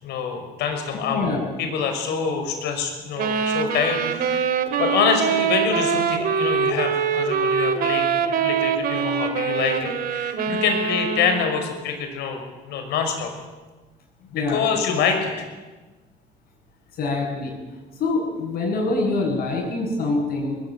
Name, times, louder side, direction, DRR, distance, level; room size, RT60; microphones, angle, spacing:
voice 1, 0.0-1.3 1.6-13.3 14.3-15.5, left 6 dB, 85° left, 5 dB, 5.8 m, -26 dB
voice 2, 1.1-1.4 14.3-14.6 17.0-17.5 18.0-20.6, left 3 dB, 65° left, -6 dB, 8.0 m, -24 dB
sound 1, 3.2-11.6, right 6 dB, 60° right, 2.3 m, -23 dB
21.5 x 21.0 x 9.2 m, 1.2 s
cardioid pair, 110°, 17 cm